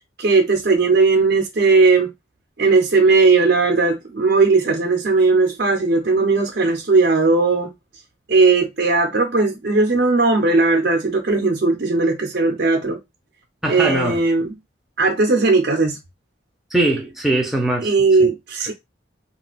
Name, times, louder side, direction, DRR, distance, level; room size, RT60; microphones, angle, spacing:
voice 1, 0.2-2.1 2.6-7.7 8.3-13.0 13.7-14.5 15.0-16.0 17.8-18.7, right 3 dB, 55° right, 0.6 m, -17 dB
voice 2, 13.6-14.2 16.7-17.9 18.2-18.3, right 1 dB, ahead, 0.6 m, -21 dB
2.4 x 2.3 x 4.0 m
head